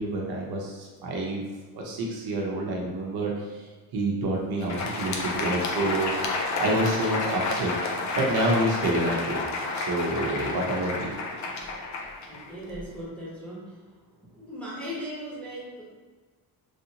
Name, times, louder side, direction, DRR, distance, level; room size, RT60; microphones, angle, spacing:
voice 1, 0.0-1.4 1.7-6.3 6.6-7.7 8.2-9.4 9.7-11.1, right 1 dB, 70° right, -2 dB, 0.8 m, -28 dB
Crowd, 4.5-13.0, left 3 dB, 45° left, 0.5 m, -30 dB
voice 2, 12.3-14.0 14.3-15.8, equal, 5° left, -9 dB, 0.9 m, -38 dB
3.3 x 2.6 x 2.8 m, 1.3 s
cardioid pair, 160°, 38 cm